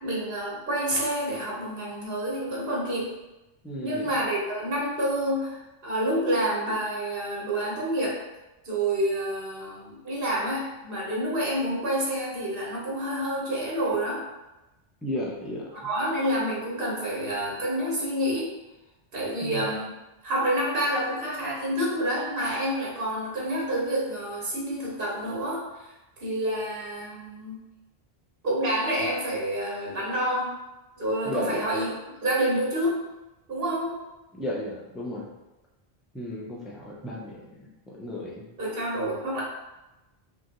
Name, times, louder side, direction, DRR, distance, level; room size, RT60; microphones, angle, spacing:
voice 1, 0.0-3.1 3.8-8.2 8.6-14.2 15.8-18.5 19.1-19.9 20.2-27.6 28.4-30.5 31.0-31.9 32.2-33.0 33.5-34.0 38.6-39.4, right 1 dB, 60° right, -4 dB, 1.3 m, -28 dB
voice 2, 3.6-4.1 15.0-15.7 19.4-19.6 31.2-31.6 34.3-35.3 36.1-38.5, left 1 dB, ahead, -3 dB, 0.4 m, -34 dB
5.1 x 2.3 x 2.9 m, 1.0 s
omnidirectional pair, 1.1 m